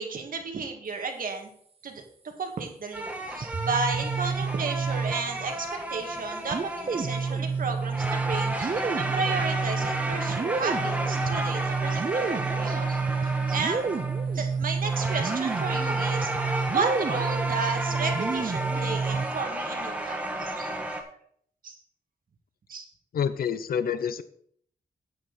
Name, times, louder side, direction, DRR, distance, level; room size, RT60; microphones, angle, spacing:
voice 1, 0.0-1.5 1.8-2.0 2.4-13.9 14.3-20.9 21.6-21.8 22.7-22.9, right 4 dB, 65° right, 3 dB, 1.9 m, -33 dB
sound 1, 2.9-21.0, right 1 dB, 10° right, 1.7 m, -33 dB
sound 2, 3.4-5.5 6.5-19.4, right 5 dB, 40° right, 0.7 m, -29 dB
voice 2, 23.1-24.2, left 7 dB, 75° left, 13 dB, 0.6 m, -27 dB
10.5 x 8.0 x 4.1 m, 0.63 s
cardioid pair, 90°, 15 cm